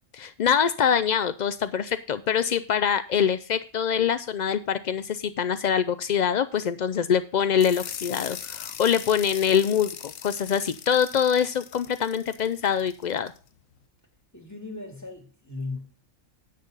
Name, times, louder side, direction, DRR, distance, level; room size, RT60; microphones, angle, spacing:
voice 1, 0.1-13.3, left 8 dB, 60° left, 0.4 m, -24 dB
sound 1, 7.6-13.4, left 9 dB, 85° left, 1.3 m, -40 dB
voice 2, 14.3-15.9, left 3 dB, 10° left, 3.0 m, -37 dB
10.5 x 8.6 x 3.9 m
omnidirectional pair, 1.4 m